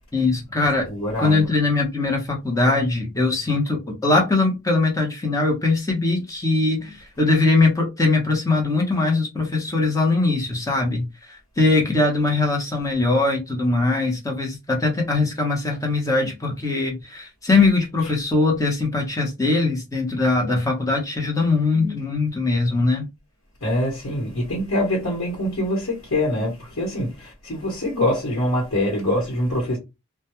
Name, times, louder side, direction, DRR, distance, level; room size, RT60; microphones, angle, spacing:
voice 1, 0.1-0.9 1.2-23.1, left 3 dB, 15° left, 0.7 m, -21 dB
voice 2, 0.9-1.4 23.6-29.8, left 1 dB, 85° left, 1.0 m, -24 dB
2.2 x 2.2 x 2.9 m
head